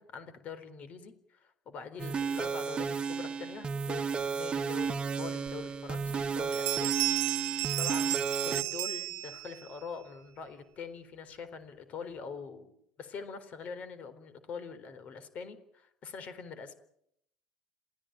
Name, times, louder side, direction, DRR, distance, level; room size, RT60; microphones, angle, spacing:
voice 1, 0.0-12.7 13.0-16.8, left 5 dB, 50° left, 11 dB, 4.0 m, -44 dB
sound 1, 2.0-8.6, right 5 dB, 35° right, 1.3 m, -33 dB
Bell, 6.1-6.3 6.5-9.7, right 25 dB, 80° right, 0.8 m, -33 dB
28.0 x 16.0 x 9.1 m, 0.76 s
supercardioid pair, 85°, 3 cm